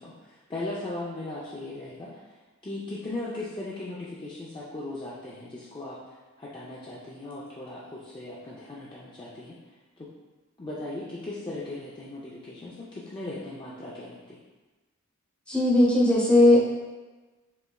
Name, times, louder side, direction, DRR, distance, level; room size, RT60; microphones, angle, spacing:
voice 1, 0.0-2.1 2.6-6.0 6.4-9.6 10.0-10.1 10.6-14.4, left 2 dB, 20° left, -7 dB, 0.5 m, -38 dB
voice 2, 15.5-16.6, left 1 dB, 5° left, -6 dB, 0.8 m, -18 dB
5.4 x 3.3 x 2.3 m, 1.2 s
head